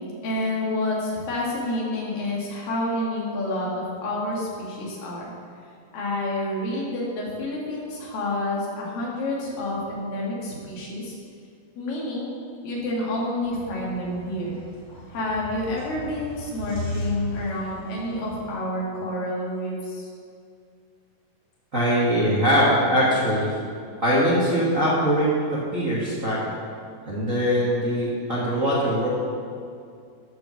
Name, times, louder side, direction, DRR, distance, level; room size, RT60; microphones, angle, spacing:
voice 1, 0.2-5.3 5.9-11.2 11.8-12.3 12.6-14.6 15.1-20.1, left 1 dB, 80° left, -4 dB, 3.7 m, -29 dB
sound 1, 13.4-18.5, equal, 25° left, 2.6 m, -36 dB
voice 2, 21.7-23.5 24.0-26.4 27.1-29.1, equal, 50° right, -8 dB, 0.9 m, -22 dB
11.5 x 4.8 x 7.1 m, 2.3 s
omnidirectional pair, 4.0 m